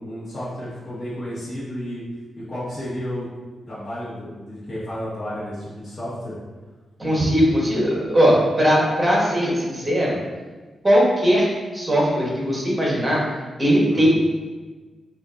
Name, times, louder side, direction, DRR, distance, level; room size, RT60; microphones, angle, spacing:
voice 1, 0.0-2.0 2.4-3.3 3.7-6.3 13.9-14.1, equal, 35° left, -10 dB, 1.3 m, -32 dB
voice 2, 7.0-10.2 10.8-11.5 11.7-13.2 13.6-14.1, equal, 20° right, -4 dB, 1.2 m, -19 dB
6.9 x 2.6 x 2.5 m, 1.3 s
wide cardioid pair, 145°, 0 cm